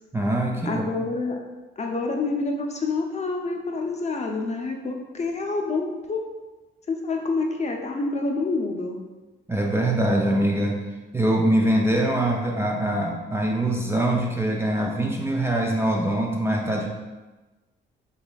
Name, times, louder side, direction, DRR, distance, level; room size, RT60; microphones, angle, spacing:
voice 1, 0.1-0.9 9.5-10.8 11.1-16.9, right 1 dB, 10° right, 0 dB, 0.4 m, -23 dB
voice 2, 0.7-1.4 1.8-6.3 6.9-9.0, left 3 dB, 35° left, 2 dB, 0.6 m, -27 dB
5.1 x 3.2 x 2.3 m, 1.2 s
cardioid pair, 90°, 20 cm